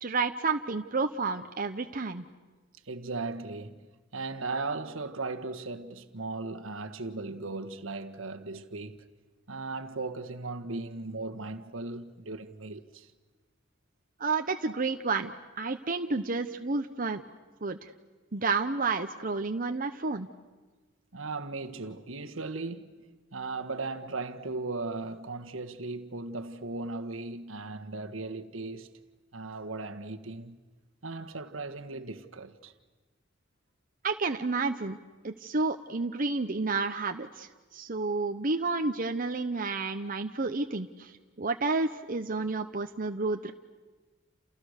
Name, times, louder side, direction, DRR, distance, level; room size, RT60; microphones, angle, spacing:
voice 1, 0.0-2.2 14.2-17.2 17.6-17.9 18.3-20.3 34.0-35.0 35.2-43.5, right 3 dB, 45° right, 0.9 m, -30 dB
voice 2, 2.9-3.9 4.1-9.0 9.5-13.1 21.1-23.0 23.3-28.9 29.3-30.6 31.0-32.7, right 3 dB, 75° right, 1.5 m, -37 dB
29.5 x 29.0 x 6.6 m
head